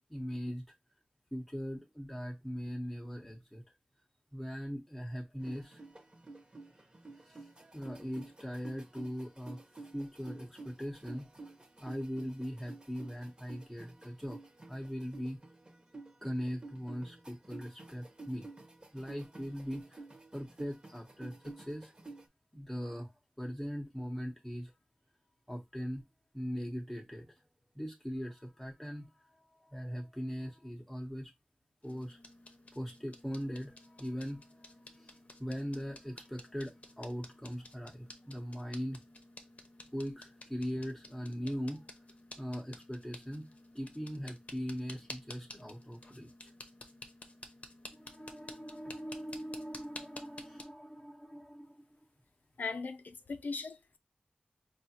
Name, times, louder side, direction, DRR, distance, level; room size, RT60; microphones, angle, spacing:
voice 1, 0.1-0.6 1.3-3.6 4.3-5.8 7.2-9.6 9.9-11.3 11.8-14.4 14.7-15.4 16.2-18.5 18.9-20.0 20.3-21.9 22.5-23.1 23.4-24.7 25.5-26.0 26.3-27.3 27.7-31.3 31.8-32.2 32.7-39.0 39.9-41.8 42.4-43.5 43.7-46.5 47.9-52.0, equal, ahead, 0.8 m, -40 dB
sound 1, 5.4-22.2, right 3 dB, 30° right, 1.0 m, -52 dB
sound 2, 31.8-50.6, left 2 dB, 50° left, 0.7 m, -52 dB
voice 2, 52.6-54.0, left 4 dB, 85° left, 0.5 m, -39 dB
4.8 x 2.4 x 2.8 m
wide cardioid pair, 75°, 3 cm